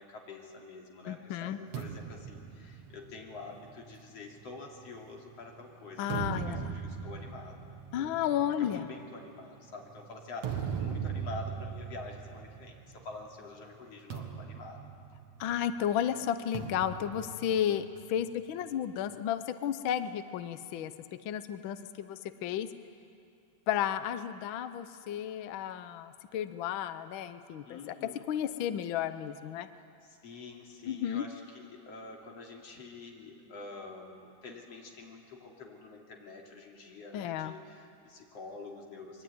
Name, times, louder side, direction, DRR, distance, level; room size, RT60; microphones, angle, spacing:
voice 1, 0.0-7.6 7.9-8.1 8.6-14.8 27.7-28.3 29.8-39.2, left 3 dB, 55° left, 0 dB, 3.9 m, -47 dB
voice 2, 1.1-1.6 6.0-6.7 7.9-8.9 15.4-20.9 21.2-22.7 23.7-27.8 28.3-29.7 30.9-31.2 37.1-37.5, left 10 dB, 80° left, 11 dB, 1.1 m, -33 dB
sound 1, 1.7-5.3 5.8-13.3 13.5-13.8 14.1-15.7 16.5-18.3, right 7 dB, 60° right, 2.6 m, -40 dB
24.0 x 22.5 x 9.4 m, 2.5 s
omnidirectional pair, 3.3 m